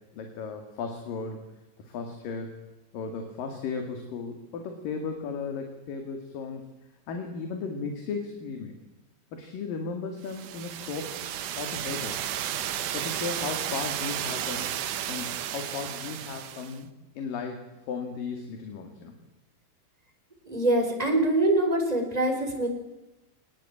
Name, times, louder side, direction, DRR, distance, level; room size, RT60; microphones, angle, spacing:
voice 1, 0.0-1.4 1.8-2.5 2.9-6.6 7.1-8.8 9.3-11.3 11.6-12.3 12.9-14.8 15.1-16.9 17.2-19.1, left 5 dB, 70° left, 5 dB, 3.9 m, -35 dB
sound 1, 10.3-16.8, right 10 dB, 65° right, 2.6 m, -33 dB
voice 2, 20.4-22.7, right 1 dB, 10° right, 2 dB, 4.2 m, -24 dB
24.0 x 19.5 x 8.7 m, 0.99 s
omnidirectional pair, 4.2 m